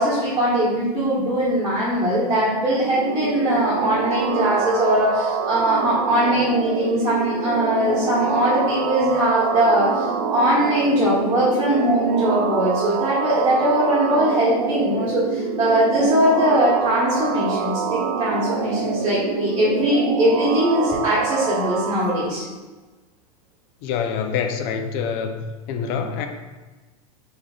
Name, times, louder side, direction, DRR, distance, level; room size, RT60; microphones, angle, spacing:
voice 1, 0.0-22.4, right 1 dB, 15° right, -11 dB, 1.2 m, -21 dB
sound 1, 2.4-22.3, right 6 dB, 65° right, 0.5 m, -26 dB
voice 2, 23.8-25.4 25.7-26.3, left 7 dB, 45° left, 6 dB, 0.5 m, -25 dB
4.5 x 3.3 x 2.3 m, 1.2 s
hypercardioid pair, 115°, 19 cm